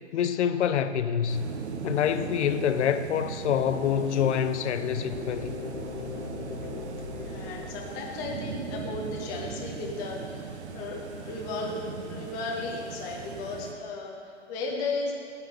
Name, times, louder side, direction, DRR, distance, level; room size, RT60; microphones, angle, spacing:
voice 1, 0.1-1.5 1.8-5.5, left 8 dB, 65° left, 0.6 m, -26 dB
sound 1, 1.3-13.7, right 5 dB, 65° right, 0.9 m, -39 dB
sound 2, 5.1-9.0, left 3 dB, 35° left, 1.4 m, -39 dB
voice 2, 7.2-11.0 11.2-11.8 12.1-15.1, left 3 dB, 10° left, 0.4 m, -35 dB
12.0 x 4.0 x 5.9 m
hypercardioid pair, 140°, 37 cm